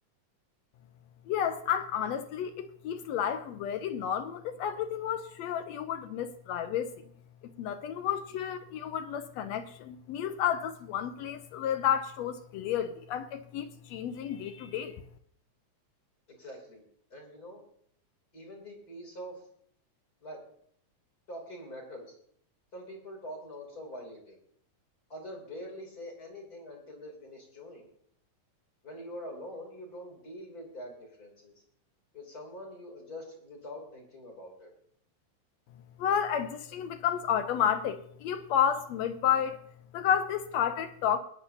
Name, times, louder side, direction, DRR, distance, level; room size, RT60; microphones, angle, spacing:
voice 1, 1.3-6.9 7.4-15.0 36.0-39.6 39.9-41.2, left 9 dB, 75° left, 1.6 m, -31 dB
voice 2, 16.3-16.8 17.1-17.6 18.3-19.4 20.2-20.4 21.3-22.1 22.7-24.4 25.1-27.9 28.8-31.5 32.1-34.7, equal, 30° left, 3.4 m, -44 dB
21.5 x 9.5 x 2.8 m
omnidirectional pair, 3.5 m